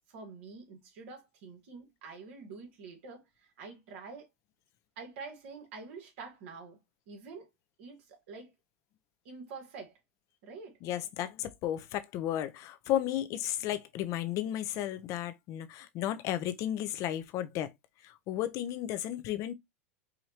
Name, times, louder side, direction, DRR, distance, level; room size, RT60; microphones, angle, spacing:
voice 1, 0.1-4.3 5.0-6.8 7.1-7.5 7.8-8.5 9.3-10.0 10.4-10.8, right 4 dB, 65° right, 1.9 m, -47 dB
voice 2, 10.8-17.7 18.0-19.5, left 12 dB, 45° left, 0.8 m, -34 dB
5.0 x 2.6 x 2.9 m
hypercardioid pair, 115°, 7 cm